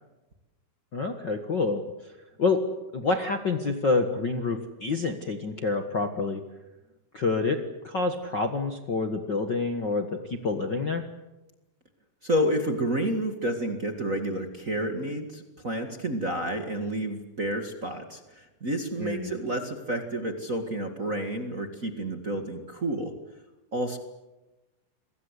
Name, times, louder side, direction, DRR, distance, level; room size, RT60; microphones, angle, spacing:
voice 1, 0.9-2.1 2.4-2.6 2.9-6.4 7.1-11.0 19.0-19.3, left 3 dB, 60° left, 6 dB, 1.1 m, -27 dB
voice 2, 12.2-23.1 23.7-24.0, right 1 dB, 35° right, 5 dB, 1.3 m, -30 dB
28.5 x 22.5 x 8.2 m, 1.0 s
omnidirectional pair, 4.6 m